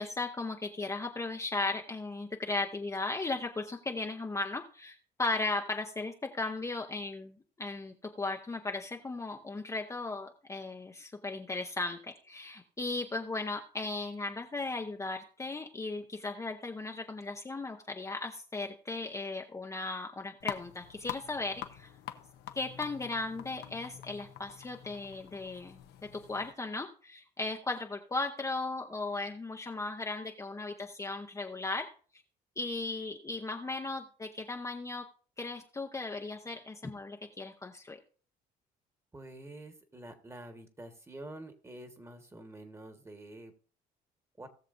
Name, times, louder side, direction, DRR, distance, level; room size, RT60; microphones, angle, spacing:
voice 1, 0.0-12.0 12.3-21.9 22.6-25.8 26.3-31.9 32.6-35.0 35.4-38.0, left 3 dB, 15° left, 2 dB, 0.8 m, -36 dB
sound 1, 20.4-26.5, left 12 dB, 80° left, 0.9 m, -45 dB
voice 2, 39.1-43.5 44.4-44.5, right 1 dB, 15° right, 7 dB, 1.5 m, -47 dB
19.0 x 6.6 x 2.6 m, 0.42 s
cardioid pair, 110°, 17 cm